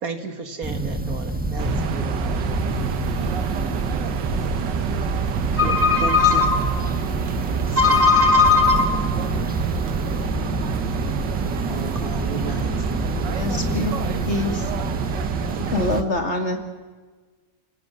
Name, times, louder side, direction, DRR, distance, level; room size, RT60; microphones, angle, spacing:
voice 1, 0.0-2.4, right 4 dB, 55° right, 7 dB, 2.0 m, -34 dB
sound 1, 0.6-16.0, right 1 dB, 5° right, 1.5 m, -28 dB
sound 2, 1.6-16.0, right 8 dB, 75° right, 1.7 m, -28 dB
voice 2, 5.5-6.8 7.7-9.1 11.7-12.7, left 4 dB, 35° right, 5 dB, 1.3 m, -19 dB
voice 3, 13.3-14.7 15.1-15.3 15.7-16.6, left 2 dB, 40° left, 4 dB, 2.5 m, -26 dB
30.0 x 17.5 x 6.4 m, 1.3 s
omnidirectional pair, 1.9 m